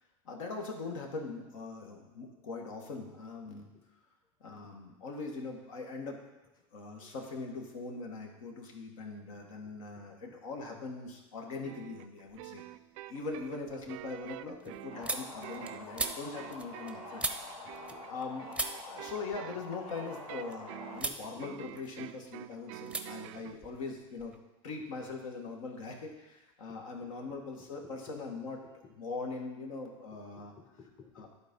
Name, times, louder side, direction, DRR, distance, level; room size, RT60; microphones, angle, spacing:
voice 1, 0.2-3.7 4.4-6.2 6.7-12.6 13.1-17.5 18.1-24.3 24.6-28.6 29.0-30.5 31.2-31.3, left 3 dB, 70° left, 1 dB, 1.6 m, -41 dB
voice 2, 3.4-3.9 4.8-4.9 6.8-7.1 9.3-10.4 14.6-14.8 15.9-16.0 16.8-17.0 17.6-18.0 20.6-21.4 21.7-21.8 23.6-23.7 24.8-24.9 26.7-28.1 28.6-29.0 30.1-31.3, left 5 dB, 25° left, 3 dB, 1.1 m, -60 dB
sound 1, 11.6-23.6, right 16 dB, 65° right, 0.4 m, -47 dB
sound 2, 12.3-12.8 13.2-18.3 18.5-20.6 20.9-21.3 21.6-22.3 22.9-23.1 23.3-24.4, right 3 dB, 5° right, 0.7 m, -40 dB
sound 3, 14.9-21.0, left 3 dB, 90° left, 1.3 m, -47 dB
11.0 x 4.2 x 5.3 m, 1.1 s
hypercardioid pair, 100°, 17 cm